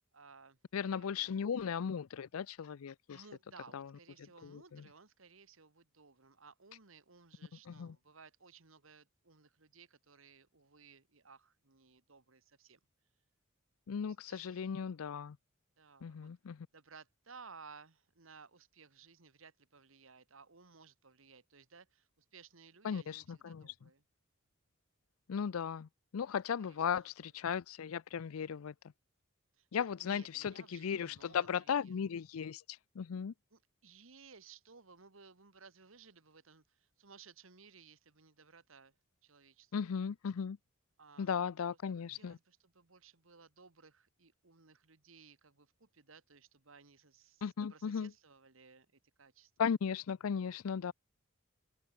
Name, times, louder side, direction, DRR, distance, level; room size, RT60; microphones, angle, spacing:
voice 1, 0.1-1.4 3.1-12.8 13.9-14.6 15.8-16.3 16.7-24.0 26.6-27.1 29.5-31.9 33.5-38.9 39.2-39.7 41.0-41.4 41.9-47.4 47.7-49.5, right 5 dB, 65° right, 1.7 m, -59 dB
voice 2, 0.7-3.2 3.7-3.9 4.4-4.9 7.7-8.0 13.9-15.4 16.0-16.7 22.8-23.9 25.3-28.7 29.7-33.3 39.7-40.6 41.2-42.4 47.4-48.1 49.6-50.9, left 7 dB, 85° left, 0.4 m, -37 dB
open air
head